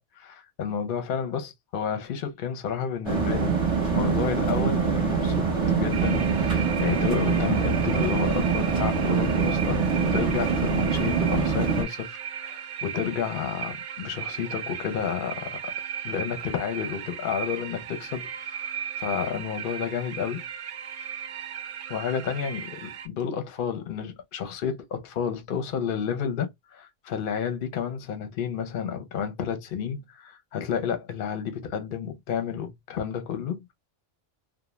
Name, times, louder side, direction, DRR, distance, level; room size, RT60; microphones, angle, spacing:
voice 1, 0.0-3.5 3.9-15.6 16.0-20.4 21.9-33.7, left 7 dB, 55° left, 0.7 m, -31 dB
sound 1, 3.0-11.8, right 5 dB, 35° right, 0.7 m, -24 dB
sound 2, 5.9-23.1, right 9 dB, 90° right, 1.0 m, -36 dB
2.3 x 2.1 x 3.0 m
omnidirectional pair, 1.2 m